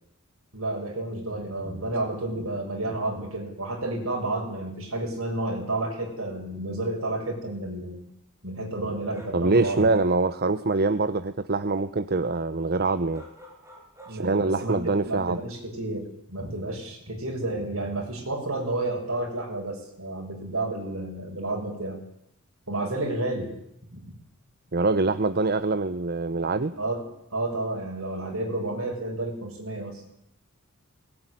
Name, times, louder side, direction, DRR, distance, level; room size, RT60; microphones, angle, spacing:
voice 1, 0.5-8.0 8.4-9.9 14.0-22.0 22.7-23.5 23.9-24.2 26.8-27.0 27.3-30.0, right 2 dB, 70° right, 2 dB, 6.7 m, -31 dB
sound 1, 9.1-10.2 13.1-14.4 14.7-14.8, equal, 15° right, 5.1 m, -50 dB
voice 2, 9.3-13.2 14.1-15.4 24.7-26.7, right 3 dB, 45° right, 11 dB, 0.9 m, -24 dB
19.5 x 19.5 x 9.9 m, 0.77 s
head